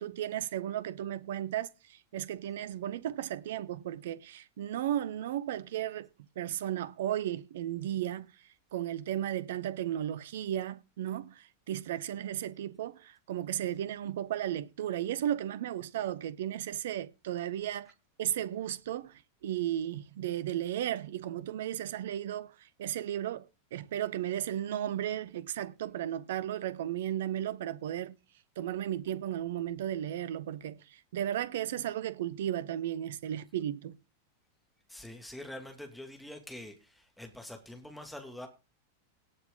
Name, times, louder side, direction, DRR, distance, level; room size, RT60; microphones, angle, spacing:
voice 1, 0.0-6.1 6.4-8.3 8.7-17.9 18.2-28.2 28.6-34.0, right 11 dB, 55° right, 0.8 m, -35 dB
voice 2, 34.9-38.5, left 1 dB, ahead, 2.5 m, -45 dB
18.0 x 7.1 x 3.8 m
figure-of-eight pair, 90°, 0 cm